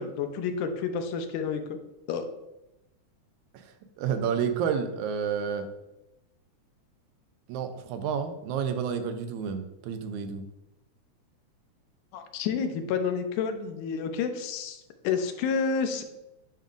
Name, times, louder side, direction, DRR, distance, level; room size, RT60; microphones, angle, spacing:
voice 1, 0.0-1.8 2.1-2.3 12.1-16.0, left 6 dB, 90° left, 7 dB, 2.2 m, -30 dB
voice 2, 3.5-5.7 7.5-10.5, right 7 dB, 80° right, 7 dB, 2.0 m, -30 dB
8.9 x 5.4 x 2.5 m, 0.92 s
omnidirectional pair, 3.4 m